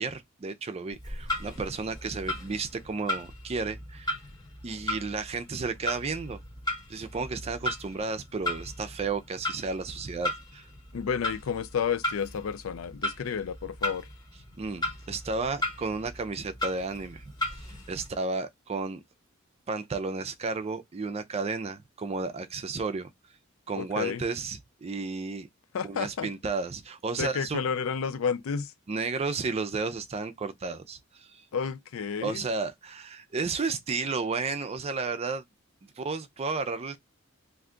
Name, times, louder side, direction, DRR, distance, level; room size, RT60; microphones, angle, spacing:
voice 1, 0.0-4.2 4.6-6.4 6.9-10.7 14.6-17.2 17.6-19.0 19.7-23.1 23.7-25.5 25.8-27.7 28.9-31.4 32.2-35.4 36.0-37.0, right 4 dB, 30° right, 0.4 m, -33 dB
Clock, 0.9-18.1, left 1 dB, 20° left, 0.9 m, -36 dB
voice 2, 10.9-14.0 23.7-24.2 25.7-26.3 27.2-28.7 31.5-32.4, left 6 dB, 85° left, 0.4 m, -31 dB
2.5 x 2.3 x 3.6 m
head